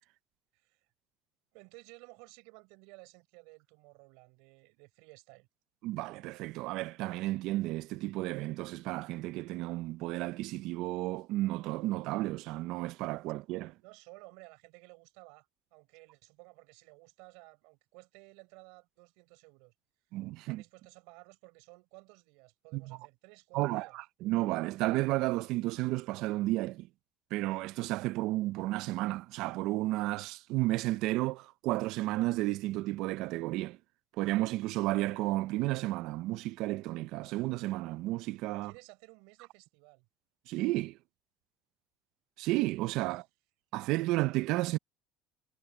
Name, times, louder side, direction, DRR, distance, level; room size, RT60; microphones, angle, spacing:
voice 1, 1.5-5.5 13.8-19.7 20.5-24.0 38.6-40.1, right 28 dB, 80° right, 4.1 m, -55 dB
voice 2, 5.8-13.8 20.1-20.6 22.7-23.0 23.5-26.9 27.3-33.8 34.2-38.7 40.5-41.0 42.4-43.3 43.7-44.8, right 18 dB, 60° right, 0.4 m, -32 dB
cardioid pair, 160°, 0 cm